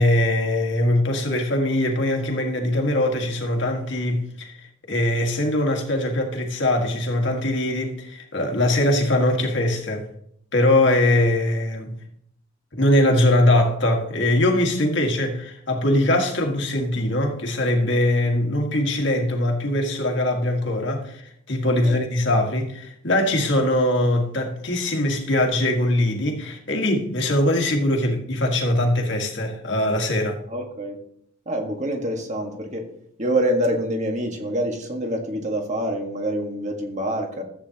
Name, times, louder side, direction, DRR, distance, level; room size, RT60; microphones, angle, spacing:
voice 1, 0.0-4.6 4.9-10.1 10.5-12.0 12.7-30.4, left 1 dB, 55° left, 1.7 m, -21 dB
voice 2, 30.5-31.0 31.5-32.9 33.2-37.4, right 1 dB, 35° right, 1.6 m, -26 dB
14.0 x 8.6 x 2.9 m
head